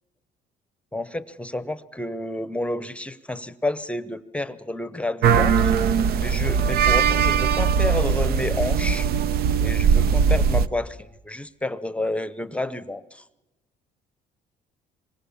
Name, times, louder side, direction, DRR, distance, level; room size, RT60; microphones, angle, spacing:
voice 1, 0.9-5.7 6.2-9.1 9.6-13.2, left 2 dB, 5° left, 14 dB, 0.8 m, -30 dB
sound 1, 5.2-10.7, right 7 dB, 65° right, 0.8 m, -20 dB
26.0 x 23.0 x 7.1 m, 1.0 s
cardioid pair, 110°, 17 cm